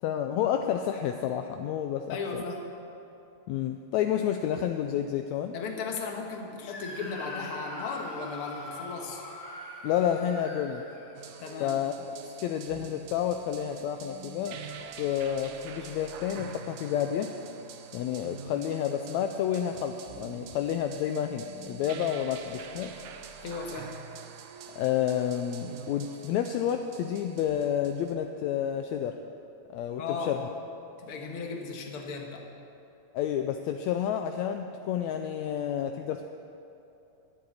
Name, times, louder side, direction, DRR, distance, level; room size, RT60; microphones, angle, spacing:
voice 1, 0.0-2.4 3.5-5.6 9.8-10.8 11.6-11.9 12.4-14.6 15.0-17.3 17.9-22.9 24.7-29.2 29.7-30.0 30.3-30.4 33.1-36.2, left 9 dB, 80° left, 5 dB, 1.8 m, -30 dB
voice 2, 2.1-2.6 5.5-9.2 11.4-11.8 23.4-23.9 30.0-30.4 31.0-32.5, left 4 dB, 55° left, 1 dB, 2.0 m, -36 dB
Screaming, 6.7-11.5, left 1 dB, 35° left, 1.7 m, -42 dB
sound 1, 11.1-28.1, right 7 dB, 90° right, 2.3 m, -46 dB
12.5 x 7.8 x 9.5 m, 2.8 s
omnidirectional pair, 3.4 m